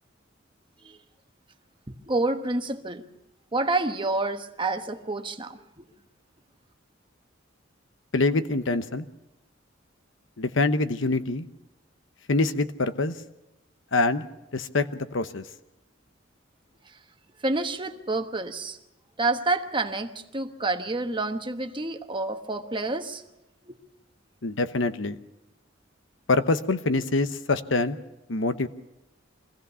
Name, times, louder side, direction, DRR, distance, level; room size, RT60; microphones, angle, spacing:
voice 1, 1.9-3.0 3.5-5.9 17.4-18.8 19.2-23.2 23.7-23.8, right 2 dB, 25° right, 1.2 m, -28 dB
voice 2, 8.1-9.0 10.4-11.5 12.3-13.1 13.9-14.2 14.5-14.9 15.1-15.4 24.4-25.2 26.3-28.0 28.3-28.7, left 3 dB, 70° left, 1.0 m, -25 dB
24.0 x 16.0 x 6.9 m
head